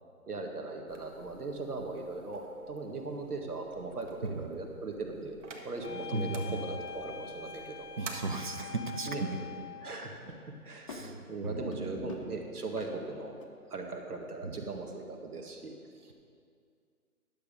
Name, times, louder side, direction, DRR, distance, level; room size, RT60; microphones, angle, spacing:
voice 1, 0.3-5.3 5.6-8.2 9.1-9.2 9.8-10.2 10.6-15.7 16.0-16.1, right 3 dB, 80° right, 2 dB, 1.7 m, -39 dB
sound 1, 0.9-8.1, right 4 dB, 50° right, 1.4 m, -51 dB
sound 2, 5.8-10.0, left 7 dB, 85° left, 1.0 m, -44 dB
voice 2, 6.1-6.6 8.0-9.3 10.9-12.1 14.4-14.6, right 3 dB, 35° right, 7 dB, 0.5 m, -36 dB
sound 3, 8.0-8.8 9.8-13.5, left 3 dB, 20° left, 0.6 m, -49 dB
11.5 x 7.1 x 5.2 m, 2.3 s
figure-of-eight pair, 140°, 45 cm